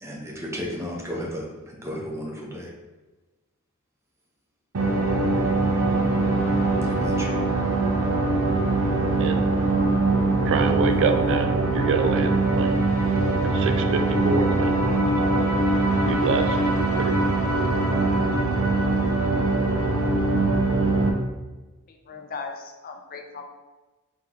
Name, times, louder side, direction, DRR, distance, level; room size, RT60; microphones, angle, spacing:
voice 1, 0.0-2.7 6.8-7.3, equal, 15° right, -2 dB, 0.7 m, -34 dB
sound 1, 4.7-21.1, right 2 dB, 80° right, 0.7 m, -22 dB
voice 2, 10.5-12.8 13.5-15.0 16.1-16.6 17.0-17.3, right 5 dB, 60° right, 7 dB, 0.3 m, -26 dB
voice 3, 21.9-23.4, left 4 dB, 45° left, 3 dB, 0.5 m, -38 dB
3.5 x 3.5 x 3.0 m, 1.2 s
head